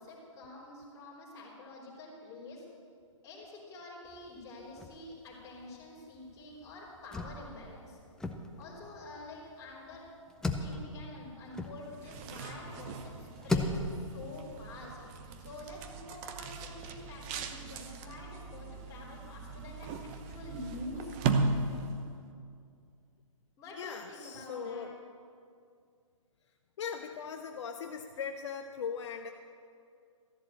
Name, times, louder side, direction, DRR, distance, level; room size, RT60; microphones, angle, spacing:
voice 1, 0.0-2.7 3.2-8.0 8.6-10.1 10.6-15.0 15.4-21.2 23.6-24.9, left 2 dB, 20° left, -5 dB, 3.6 m, -47 dB
sound 1, 4.1-5.3 5.6-5.7 6.0-12.4 12.9-14.1, left 2 dB, 5° left, 0.6 m, -37 dB
sound 2, 11.8-22.2, right 4 dB, 30° right, 0.9 m, -37 dB
voice 2, 23.8-24.9 26.8-29.3, left 6 dB, 60° left, 5 dB, 0.8 m, -39 dB
13.5 x 7.2 x 8.6 m, 2.3 s
hypercardioid pair, 140°, 17 cm